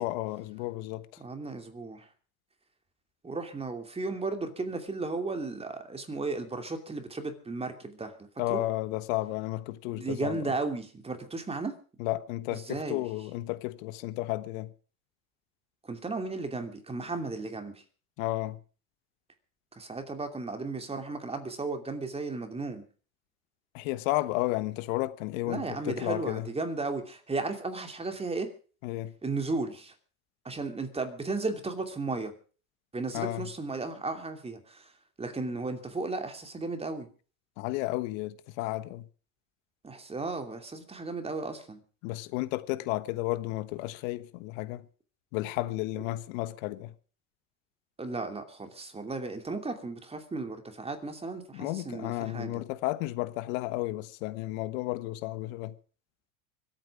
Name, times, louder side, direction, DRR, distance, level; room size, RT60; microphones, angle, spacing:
voice 1, 0.0-1.0 8.4-10.4 12.0-14.7 18.2-18.6 23.7-26.4 28.8-29.1 33.1-33.5 37.6-39.0 42.0-44.8 45.3-46.9 51.5-55.7, left 18 dB, 65° left, 1.3 m, -32 dB
voice 2, 1.2-2.1 3.2-8.2 8.5-8.6 9.9-11.7 12.5-13.0 15.8-17.8 19.7-22.8 25.5-28.5 29.2-29.9 30.4-32.3 32.9-34.9 35.2-37.1 39.8-41.8 48.0-52.6, right 3 dB, 15° right, 2.7 m, -35 dB
24.5 x 9.1 x 4.9 m
supercardioid pair, 110°, 42 cm